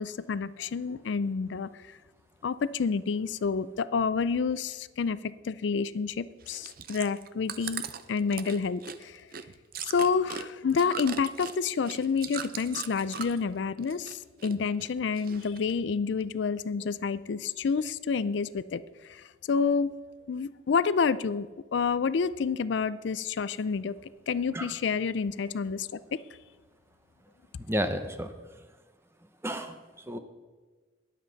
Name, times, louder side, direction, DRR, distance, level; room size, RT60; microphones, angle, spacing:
voice 1, 0.0-2.0 2.4-9.2 9.8-19.9 20.3-24.0 24.3-26.2, left 5 dB, 70° left, 16 dB, 0.4 m, -29 dB
Chewing mastication, 6.4-13.5 13.8-14.5 14.8-15.7 16.2-16.3, right 7 dB, 50° right, 0.6 m, -39 dB
voice 2, 27.7-28.3 29.4-30.2, equal, 15° right, 8 dB, 0.8 m, -32 dB
21.0 x 7.7 x 4.0 m, 1.3 s
head